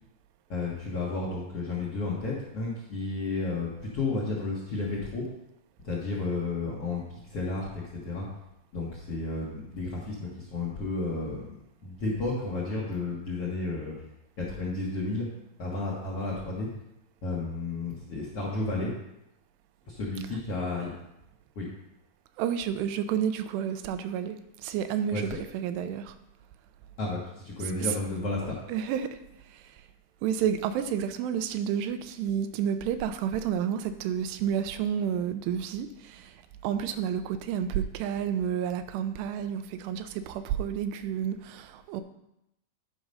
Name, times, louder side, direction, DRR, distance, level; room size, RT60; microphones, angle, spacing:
voice 1, 0.5-5.3 5.8-7.0 7.3-8.2 8.7-11.4 11.8-13.9 14.4-15.3 15.6-16.7 17.2-18.9 19.9-20.9 21.5-21.6 25.1-25.4 27.0-28.6, left 3 dB, 60° left, -4 dB, 1.5 m, -32 dB
voice 2, 22.4-25.3 25.5-26.2 27.8-28.0 28.7-29.2 29.5-29.8 30.2-42.0, right 9 dB, 85° right, 9 dB, 2.8 m, -30 dB
10.5 x 4.9 x 5.4 m, 0.85 s
omnidirectional pair, 4.7 m